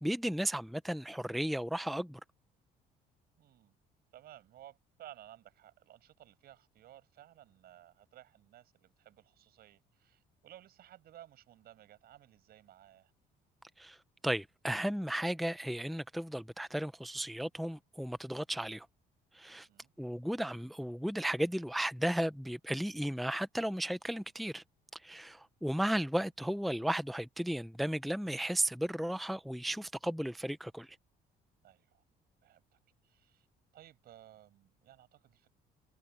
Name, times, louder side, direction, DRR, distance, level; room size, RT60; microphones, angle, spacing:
voice 1, 0.0-2.2 13.8-14.0 14.2-18.9 19.3-19.7 20.0-24.6 25.0-31.0, right 1 dB, ahead, 0.6 m, -34 dB
voice 2, 3.4-3.8 4.1-13.1 19.5-19.9 31.6-32.0 32.4-33.5 33.7-35.5, right 12 dB, 65° right, 6.8 m, -57 dB
cardioid pair, 110°, 17 cm